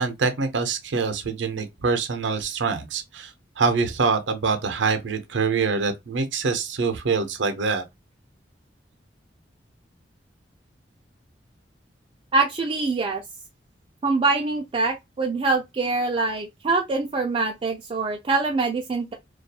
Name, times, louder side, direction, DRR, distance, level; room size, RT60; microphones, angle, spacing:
voice 1, 0.0-3.3 3.6-7.8, right 4 dB, 80° right, 0.6 m, -25 dB
voice 2, 12.3-13.2 14.0-19.1, right 3 dB, 30° right, 0.3 m, -24 dB
2.3 x 2.3 x 2.7 m
head